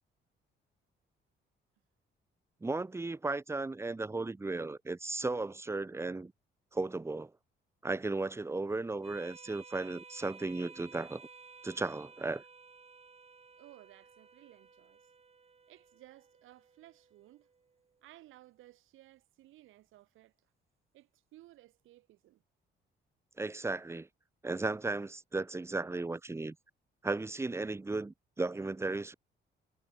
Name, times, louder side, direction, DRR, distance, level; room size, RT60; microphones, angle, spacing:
voice 1, 2.6-6.3 6.7-7.3 7.8-11.3 11.6-12.4 23.4-24.1 24.4-26.6 27.0-29.1, right 3 dB, 15° right, 0.6 m, -35 dB
sound 1, 9.0-18.0, right 5 dB, 30° right, 1.9 m, -56 dB
voice 2, 13.6-15.0 15.7-17.5 18.0-20.3 20.9-22.4, right 16 dB, 90° right, 2.1 m, -58 dB
cardioid pair, 90°, 20 cm